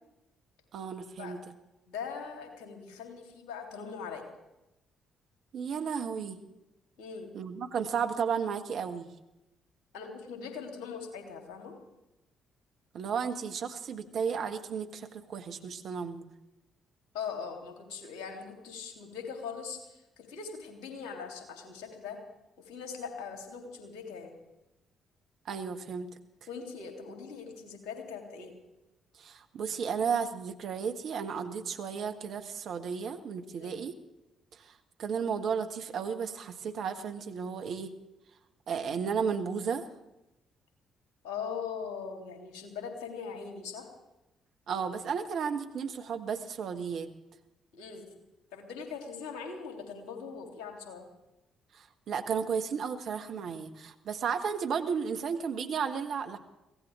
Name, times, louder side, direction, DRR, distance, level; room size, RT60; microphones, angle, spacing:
voice 1, 0.7-1.4 5.5-6.4 7.3-9.1 12.9-16.3 25.4-26.1 29.2-33.9 34.5-34.7 35.0-37.9 38.7-39.9 44.7-47.1 51.7-56.4, right 6 dB, 55° right, 6 dB, 1.2 m, -33 dB
voice 2, 1.9-4.2 7.0-7.3 9.9-11.7 17.1-22.2 22.6-24.3 26.5-28.5 33.5-33.8 41.2-43.9 47.7-48.0 48.5-51.0, left 6 dB, 65° left, 3 dB, 3.1 m, -41 dB
23.5 x 16.5 x 3.6 m, 0.95 s
figure-of-eight pair, 45°, 0 cm